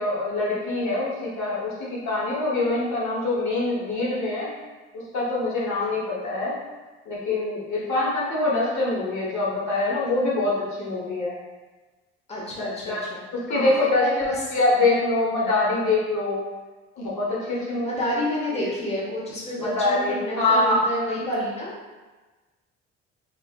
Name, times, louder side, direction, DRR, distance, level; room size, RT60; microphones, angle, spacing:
voice 1, 0.0-4.5 5.1-6.6 7.1-11.4 12.6-13.1 13.3-14.1 14.5-16.5 17.0-17.9 18.6-18.7 19.6-20.9, left 2 dB, 60° left, -6 dB, 1.1 m, -24 dB
voice 2, 12.3-13.2 13.5-14.4 17.5-21.8, left 1 dB, 20° left, -5 dB, 0.9 m, -29 dB
3.4 x 2.4 x 2.4 m, 1.2 s
hypercardioid pair, 55°, 33 cm